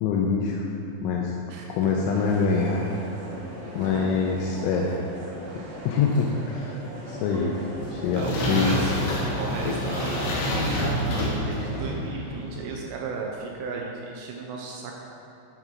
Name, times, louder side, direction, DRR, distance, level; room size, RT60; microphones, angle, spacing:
voice 1, 0.0-0.6 1.0-1.3 1.7-2.9 3.3-3.4 3.8-5.0 5.6-6.8 7.1-7.6 7.9-8.8 9.6-9.7, left 5 dB, 85° left, -1 dB, 2.9 m, -25 dB
voice 2, 1.5-2.0 3.8-4.1 8.1-8.9 9.4-15.0, right 4 dB, 80° right, -1 dB, 3.2 m, -35 dB
sound 1, 2.0-11.9, equal, 45° right, 1.3 m, -39 dB
sound 2, 7.6-12.6, equal, 70° left, 3.6 m, -28 dB
11.5 x 4.5 x 6.1 m, 2.8 s
omnidirectional pair, 5.9 m